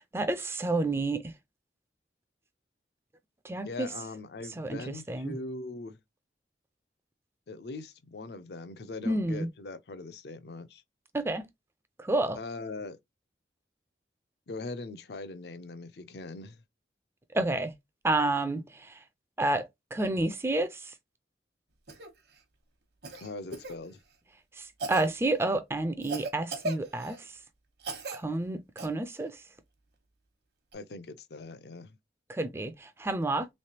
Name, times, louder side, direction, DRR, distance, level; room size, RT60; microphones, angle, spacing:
voice 1, 0.0-1.3 3.4-3.9 4.6-5.4 9.0-9.5 11.1-11.5 12.0-12.4 17.3-17.7 18.0-18.9 19.4-20.7 24.6-27.2 28.1-29.3 32.3-33.5, right 2 dB, 15° right, 0.3 m, -30 dB
voice 2, 3.6-6.0 7.5-10.8 12.4-13.0 14.5-16.6 23.2-24.0 30.7-32.0, left 3 dB, 65° left, 0.5 m, -41 dB
Cough, 21.9-22.1 23.0-23.8 24.8-25.1 26.0-27.2 27.8-28.2 28.8-28.9 30.7-30.8, right 2 dB, 65° right, 1.0 m, -37 dB
3.2 x 3.2 x 2.8 m
head